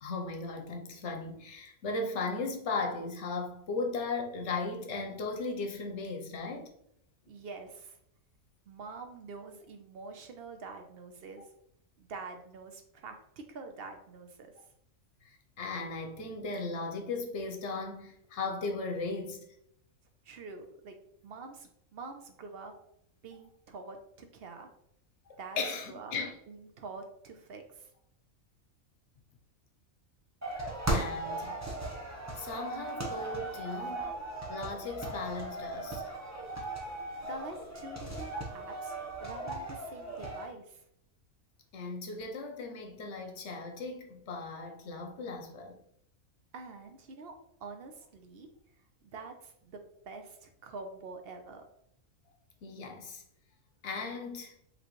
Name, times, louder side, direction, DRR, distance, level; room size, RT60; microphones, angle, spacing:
voice 1, 0.0-6.7 15.6-19.4 25.3-26.3 30.9-31.6 32.4-34.1 34.5-36.0 41.7-45.8 52.6-53.2 53.8-54.5, left 3 dB, 65° left, 1.0 m, -37 dB
voice 2, 7.3-8.0 8.7-11.5 12.0-14.5 20.2-20.9 21.2-22.7 23.2-24.7 25.4-25.6 25.9-26.2 26.5-27.9 33.8-34.0 37.2-40.8 46.5-47.3 47.6-48.5 49.0-51.6, right 4 dB, 55° right, 0.8 m, -46 dB
sound 1, 30.4-40.5, right 1 dB, 15° right, 0.7 m, -37 dB
5.1 x 3.1 x 3.0 m
omnidirectional pair, 1.4 m